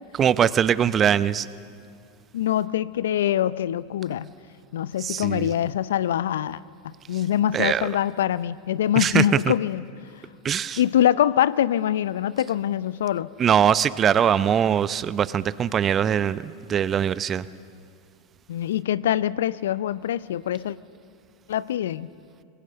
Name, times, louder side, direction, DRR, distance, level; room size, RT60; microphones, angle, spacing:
voice 1, 0.1-1.5 5.0-5.5 7.5-7.9 9.0-9.5 10.4-10.8 13.4-17.5, right 8 dB, 30° right, 16 dB, 0.7 m, -22 dB
voice 2, 2.3-4.3 4.7-9.8 10.8-13.3 18.5-20.8 21.5-22.1, left 11 dB, 70° left, 19 dB, 0.5 m, -24 dB
26.0 x 21.0 x 6.8 m, 2.3 s
hypercardioid pair, 90°, 0 cm